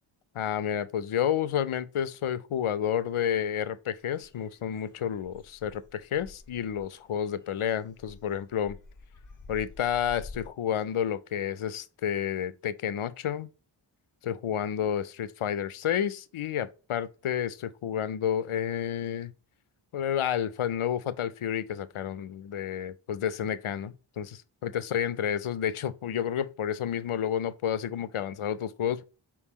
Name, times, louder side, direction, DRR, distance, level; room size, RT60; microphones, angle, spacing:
voice 1, 0.3-8.8 9.5-13.5 14.2-19.3 19.9-29.0, left 9 dB, 85° left, 0.6 m, -30 dB
sound 1, 4.0-10.5, left 3 dB, 40° left, 0.9 m, -49 dB
4.5 x 3.6 x 2.8 m
wide cardioid pair, 55°, 49 cm